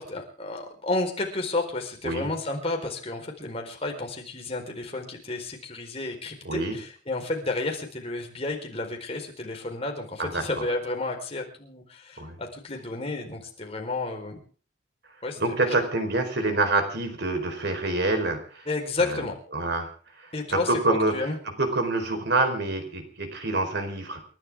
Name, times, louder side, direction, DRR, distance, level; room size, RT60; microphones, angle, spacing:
voice 1, 0.0-14.4 15.2-15.8 18.7-19.4 20.3-21.4, left 2 dB, 30° left, 2 dB, 4.4 m, -31 dB
voice 2, 6.4-6.8 10.2-10.6 12.2-12.4 15.4-18.7 19.1-19.2 19.5-19.9 20.2-20.3 20.7-21.1 21.6-24.2, right 2 dB, 60° right, 6 dB, 4.4 m, -26 dB
29.0 x 12.0 x 3.7 m, 0.40 s
head